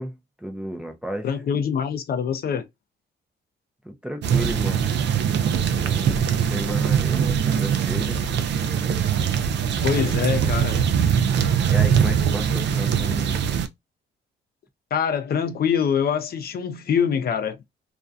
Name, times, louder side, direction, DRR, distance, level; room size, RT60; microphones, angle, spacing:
voice 1, 0.0-1.4 3.8-4.9 5.7-8.3 10.0-10.6 11.7-13.4, right 1 dB, 5° right, 0.4 m, -33 dB
voice 2, 1.2-2.7 5.6-5.8 9.8-10.8 14.9-17.6, left 7 dB, 50° left, 0.5 m, -24 dB
sound 1, 4.2-13.7, right 8 dB, 60° right, 0.4 m, -22 dB
2.4 x 2.2 x 2.4 m
cardioid pair, 90°, 20 cm